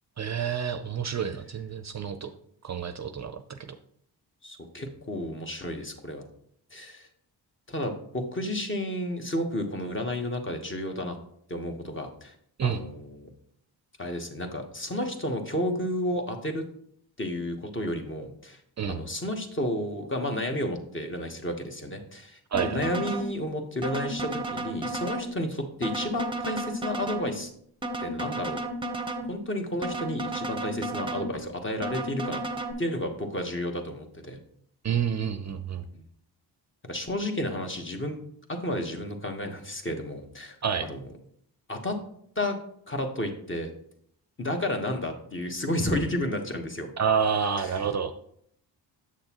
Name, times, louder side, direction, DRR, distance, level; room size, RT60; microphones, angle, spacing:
voice 1, 0.2-2.3 2.6-3.3 3.7-3.8 12.6-12.8 18.8-19.0 22.5-22.8 34.8-35.8 40.6-40.9 47.0-48.1, right 7 dB, 40° right, 9 dB, 0.5 m, -28 dB
voice 2, 4.4-6.3 6.7-7.1 7.7-11.2 11.5-12.3 12.6-13.3 14.0-16.6 17.2-18.6 18.9-27.5 28.0-28.6 29.3-32.4 32.8-34.4 35.9-36.0 36.8-38.2 38.5-40.6 40.8-41.0 41.7-42.0 42.3-42.5 42.9-43.7 44.4-46.9 47.6-47.7, left 1 dB, 30° left, 4 dB, 1.2 m, -31 dB
sound 1, 22.5-23.3 23.8-25.3 25.8-27.3 27.8-29.3 29.8-31.3 31.8-32.7, right 2 dB, 10° right, 0.8 m, -33 dB
7.3 x 6.4 x 3.0 m, 0.68 s
cardioid pair, 75°, 43 cm